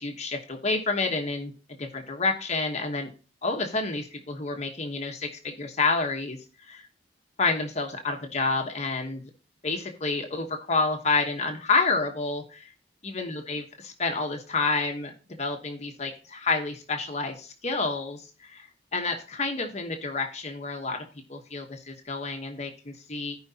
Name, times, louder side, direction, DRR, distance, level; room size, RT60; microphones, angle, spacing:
voice 1, 0.0-1.5 1.8-3.1 3.4-6.4 6.7-6.9 7.4-9.2 9.6-12.7 13.0-15.1 15.4-18.7 18.9-21.0 21.3-23.4, left 3 dB, 40° left, 3 dB, 1.1 m, -29 dB
14.5 x 5.1 x 2.8 m, 0.35 s
head